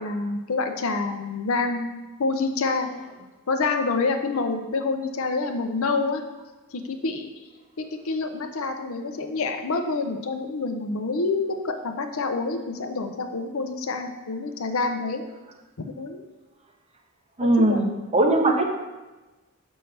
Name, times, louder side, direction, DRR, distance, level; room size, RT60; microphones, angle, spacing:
voice 1, 0.0-1.9 2.2-2.9 3.5-6.2 6.7-7.3 7.8-15.2 15.8-16.2 17.4-18.0, left 3 dB, 70° left, 6 dB, 0.6 m, -27 dB
voice 2, 17.4-18.6, right 2 dB, 30° right, 3 dB, 0.7 m, -20 dB
7.0 x 5.4 x 3.3 m, 1.2 s
head